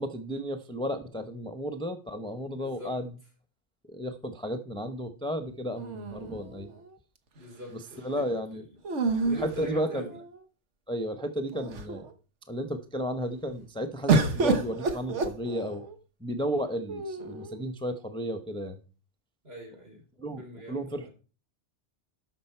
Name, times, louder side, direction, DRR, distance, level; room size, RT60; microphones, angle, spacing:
voice 1, 0.0-3.1 3.9-6.7 8.0-8.6 9.3-10.1 10.9-12.1 12.5-15.8 16.2-18.8 20.2-20.4 20.7-21.1, equal, 5° left, 7 dB, 0.7 m, -33 dB
voice 2, 2.5-2.9 7.3-8.6 9.0-10.2 19.4-20.0 20.4-21.1, equal, 60° right, 0 dB, 4.1 m, -43 dB
sound 1, 5.8-6.9 8.8-10.4 11.1-11.2 11.5-12.1 14.1-16.0 16.9-17.6, right 4 dB, 85° right, 1.5 m, -29 dB
12.5 x 6.0 x 4.5 m, 0.36 s
omnidirectional pair, 1.2 m